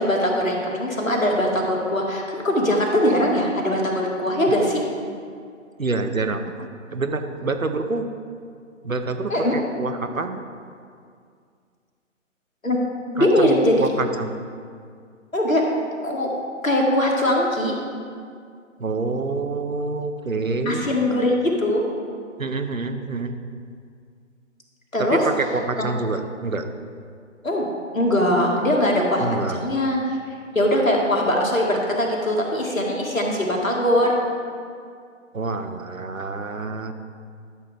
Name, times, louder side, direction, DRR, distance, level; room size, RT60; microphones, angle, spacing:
voice 1, 0.0-4.8 9.3-9.6 12.6-12.8 13.1-13.8 15.3-15.6 16.0-16.3 16.6-17.7 20.7-21.8 24.9-25.3 25.8-26.0 27.4-27.7 27.9-30.2 30.6-34.2, left 1 dB, 85° left, -1 dB, 1.8 m, -21 dB
voice 2, 5.8-8.1 8.8-10.4 13.2-14.4 18.8-20.8 22.4-23.4 25.0-26.7 29.2-29.6 35.3-36.9, right 3 dB, 90° right, 8 dB, 0.8 m, -27 dB
12.0 x 6.6 x 3.4 m, 2.2 s
figure-of-eight pair, 135°, 39 cm